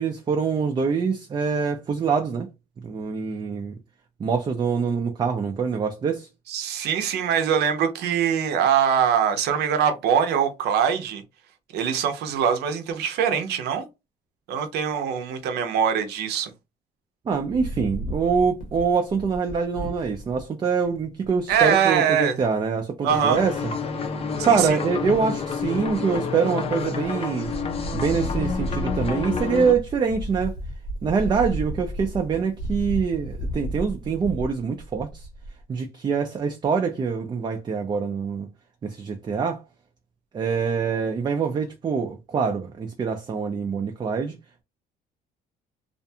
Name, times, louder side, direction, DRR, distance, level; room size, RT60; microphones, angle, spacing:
voice 1, 0.0-2.5 2.8-3.7 4.2-6.3 17.3-23.7 24.4-27.5 27.9-30.6 31.0-35.3 35.7-38.5 38.8-39.6 40.3-44.4, right 5 dB, 25° right, 0.4 m, -25 dB
voice 2, 6.5-11.2 11.7-13.8 14.5-16.5 21.5-22.4 23.0-23.4 24.4-24.8, right 8 dB, 75° right, 0.6 m, -23 dB
Wind, 17.5-20.4 20.9-21.0 21.2-21.6 23.1-23.7 24.2-24.7 25.0-26.2 26.6-27.1 27.4-35.6, equal, 75° left, 1.1 m, -33 dB
sound 1, 23.1-29.7, left 5 dB, 35° left, 0.5 m, -29 dB
2.5 x 2.2 x 2.7 m
cardioid pair, 110°, 17 cm